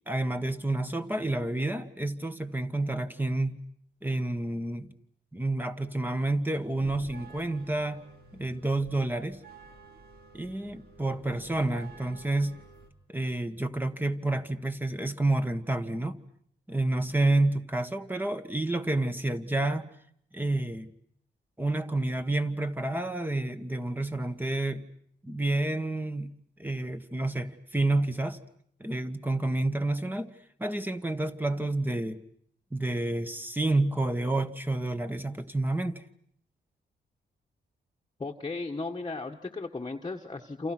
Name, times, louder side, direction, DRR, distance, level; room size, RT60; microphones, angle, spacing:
voice 1, 0.1-3.6 4.0-4.9 5.3-8.0 8.3-9.4 10.3-12.6 13.1-16.2 16.7-19.9 20.3-20.9 21.6-24.9 25.2-26.3 26.6-28.4 28.8-30.3 30.6-32.2 32.7-36.0, right 2 dB, 10° right, 9 dB, 1.6 m, -29 dB
sound 1, 6.5-12.9, right 3 dB, 55° right, 4.5 m, -52 dB
voice 2, 38.2-40.7, left 3 dB, 25° left, 1 dB, 1.5 m, -35 dB
29.0 x 28.5 x 6.2 m, 0.66 s
cardioid pair, 90°, 19 cm